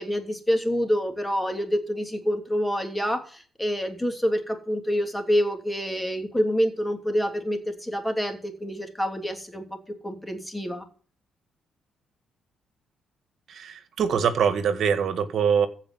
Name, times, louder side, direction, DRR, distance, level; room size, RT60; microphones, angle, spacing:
voice 1, 0.0-9.6 10.0-10.8, equal, 10° left, 5 dB, 3.0 m, -27 dB
voice 2, 13.5-15.7, right 7 dB, 60° right, 11 dB, 1.8 m, -23 dB
15.5 x 5.1 x 7.9 m, 0.42 s
cardioid pair, 90°, 0 cm